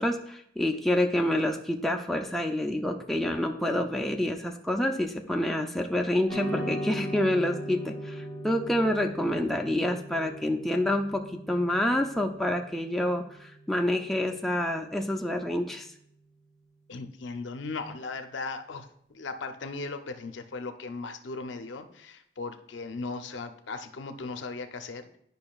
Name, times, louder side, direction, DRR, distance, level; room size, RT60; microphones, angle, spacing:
voice 1, 0.0-15.9, left 1 dB, ahead, 2 dB, 0.3 m, -28 dB
sound 1, 6.3-14.8, equal, 15° left, 1.5 m, -39 dB
voice 2, 16.9-18.9 19.1-25.2, left 3 dB, 65° left, 8 dB, 0.5 m, -37 dB
10.5 x 5.2 x 2.3 m, 0.72 s
head